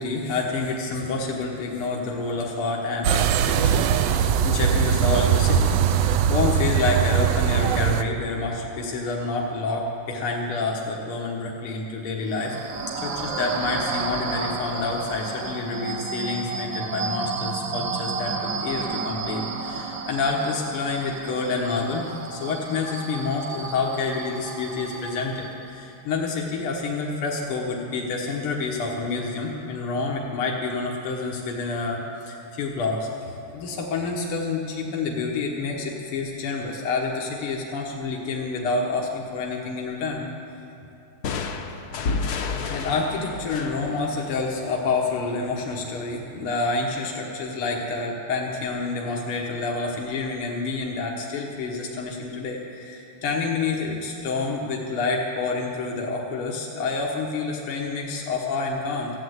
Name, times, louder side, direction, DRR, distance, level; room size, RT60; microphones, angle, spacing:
voice 1, 0.0-5.8 6.3-12.5 13.0-33.1 33.5-40.2 42.7-59.1, left 3 dB, 80° left, -1 dB, 2.0 m, -28 dB
sound 1, 3.0-8.0, right 8 dB, 75° right, 1.0 m, -21 dB
sound 2, 12.3-25.7, right 4 dB, 55° right, 1.1 m, -32 dB
sound 3, 41.2-44.9, left 4 dB, 60° left, 1.1 m, -30 dB
14.5 x 8.6 x 7.9 m, 3.0 s
omnidirectional pair, 2.4 m